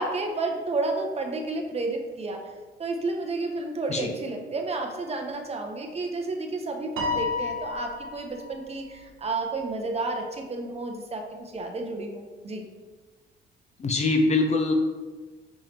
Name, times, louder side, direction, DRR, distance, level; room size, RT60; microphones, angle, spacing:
voice 1, 0.0-2.4 2.8-12.6, right 3 dB, 30° right, 3 dB, 0.7 m, -31 dB
Piano, 7.0-8.5, left 3 dB, 85° right, 0.8 m, -30 dB
voice 2, 13.8-14.7, left 3 dB, 35° left, 4 dB, 0.7 m, -23 dB
5.5 x 3.2 x 2.8 m, 1.3 s
cardioid pair, 90°, 20 cm